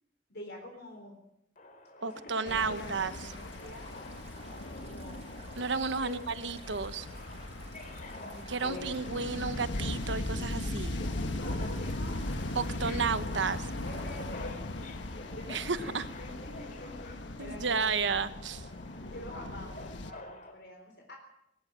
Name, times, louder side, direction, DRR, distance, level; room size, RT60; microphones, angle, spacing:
voice 1, 0.3-1.2 2.0-3.9 4.8-5.3 6.0-6.2 8.1-9.0 11.4-12.2 13.8-18.1 19.1-21.2, left 1 dB, 60° left, 2 dB, 3.8 m, -46 dB
Subway metro underground, 1.6-20.5, left 2 dB, 45° left, 3.3 m, -49 dB
voice 2, 2.0-3.1 5.6-7.1 8.5-11.0 12.5-13.7 15.5-16.1 17.4-18.6, right 5 dB, 80° right, 13 dB, 1.1 m, -32 dB
sound 1, 2.5-20.1, left 1 dB, 85° left, 1.4 m, -38 dB
sound 2, 2.7-14.4, right 4 dB, 35° right, 4.0 m, -55 dB
19.5 x 18.5 x 7.6 m, 0.78 s
head